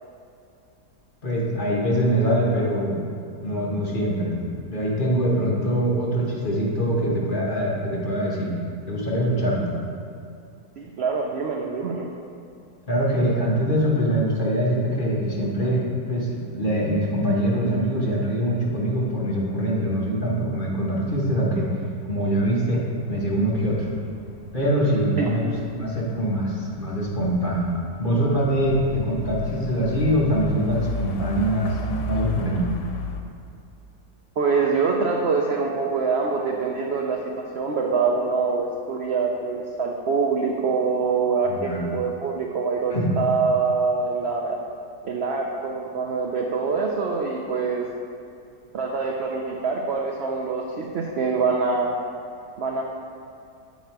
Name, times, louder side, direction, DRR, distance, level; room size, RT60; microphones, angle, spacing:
voice 1, 1.2-3.0 3.4-8.5 8.9-9.7 12.9-21.7 22.1-23.9 24.5-27.7 28.0-31.8 32.1-32.6 41.4-41.8 42.9-43.1, equal, 35° left, -4 dB, 1.0 m, -23 dB
voice 2, 10.8-12.1 25.2-25.4 34.4-44.6 45.0-47.9 48.7-52.0 52.6-52.8, right 4 dB, 80° right, 0 dB, 0.5 m, -25 dB
sound 1, 23.0-33.2, left 1 dB, 75° left, 1.2 m, -35 dB
7.8 x 4.7 x 4.5 m, 2.5 s
omnidirectional pair, 1.7 m